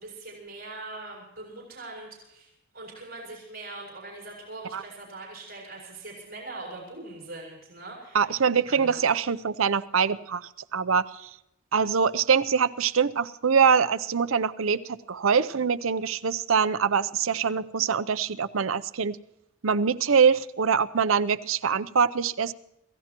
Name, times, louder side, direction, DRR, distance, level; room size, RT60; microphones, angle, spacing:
voice 1, 0.0-8.2 8.7-9.0, right 2 dB, 50° right, -2 dB, 6.6 m, -42 dB
voice 2, 8.1-11.3 11.7-19.2 19.6-22.5, right 6 dB, 80° right, 14 dB, 0.7 m, -24 dB
29.0 x 16.0 x 3.0 m, 0.84 s
head